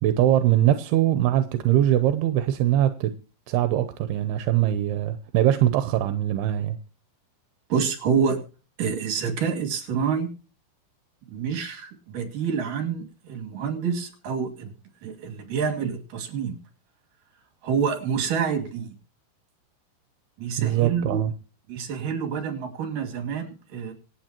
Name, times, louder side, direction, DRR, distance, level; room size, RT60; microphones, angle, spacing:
voice 1, 0.0-3.1 3.5-6.8 20.6-21.3, right 12 dB, 85° right, 11 dB, 2.8 m, -22 dB
voice 2, 7.7-8.4 8.8-10.3 11.3-14.7 15.0-16.6 17.6-18.9 20.4-21.2 21.7-23.9, right 6 dB, 55° right, 3 dB, 3.9 m, -27 dB
25.5 x 8.8 x 2.9 m, 0.34 s
omnidirectional pair, 4.6 m